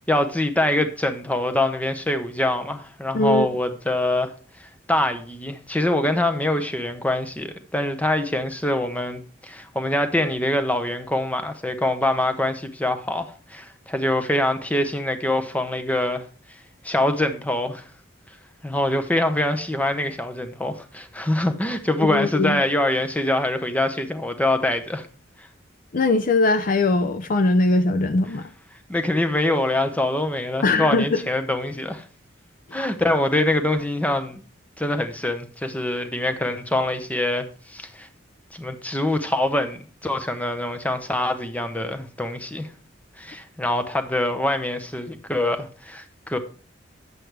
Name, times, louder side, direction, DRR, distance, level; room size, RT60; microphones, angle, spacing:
voice 1, 0.1-4.3 4.6-16.2 16.5-16.6 16.8-17.8 18.6-25.1 25.4-25.5 28.9-32.0 32.7-34.4 34.8-38.1 38.5-42.7 43.2-46.4, left 1 dB, 5° left, 0.7 m, -24 dB
voice 2, 3.1-3.5 22.0-22.6 25.9-28.4 30.6-31.2, left 2 dB, 45° left, 0.4 m, -20 dB
9.2 x 7.7 x 3.3 m
head